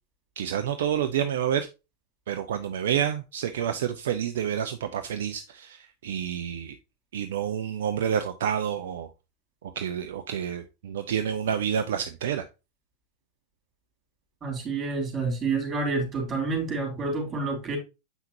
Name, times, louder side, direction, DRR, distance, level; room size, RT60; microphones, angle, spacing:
voice 1, 0.4-1.7 2.3-6.7 7.1-9.1 9.8-12.4, right 9 dB, 60° right, 0.6 m, -29 dB
voice 2, 14.4-17.8, right 3 dB, 25° right, 3.6 m, -28 dB
8.1 x 5.8 x 2.7 m
figure-of-eight pair, 90°, 0 cm